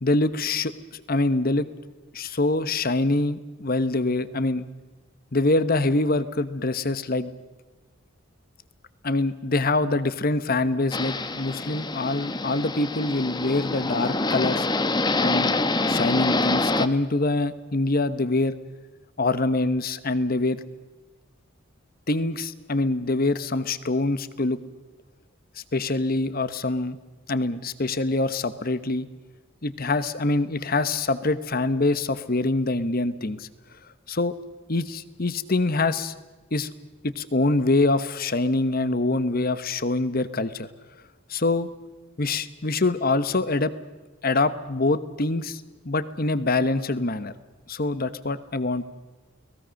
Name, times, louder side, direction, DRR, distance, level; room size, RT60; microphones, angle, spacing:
voice 1, 0.0-1.7 2.1-4.7 5.3-7.3 9.0-14.7 15.2-15.6 15.9-18.6 19.2-20.6 22.1-24.6 25.7-27.0 27.3-29.1 29.6-33.5 34.1-34.3 34.7-36.1 36.5-36.7 37.0-40.7 41.3-41.7 42.2-43.7 44.2-47.3 47.7-48.8, left 2 dB, 45° left, 14 dB, 1.1 m, -25 dB
sound 1, 10.9-16.9, left 2 dB, 20° left, 0.9 m, -26 dB
30.0 x 19.5 x 6.5 m, 1.2 s
head